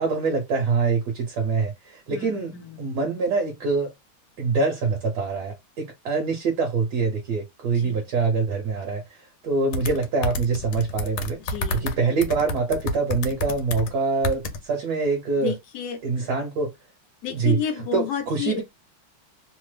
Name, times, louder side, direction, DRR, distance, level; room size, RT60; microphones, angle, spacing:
voice 1, 0.0-2.5 2.8-3.9 4.4-9.2 9.4-11.4 11.7-15.5 16.0-16.7 17.3-17.6 17.9-18.6, right 4 dB, 60° right, 1.2 m, -25 dB
voice 2, 2.1-2.9 7.7-8.1 11.4-12.0 15.4-16.0 17.2-18.6, left 8 dB, 65° left, 1.0 m, -31 dB
sound 1, 9.7-12.0 12.2-13.9 14.2-14.6, left 1 dB, 85° left, 1.5 m, -28 dB
3.5 x 2.0 x 3.2 m
omnidirectional pair, 2.3 m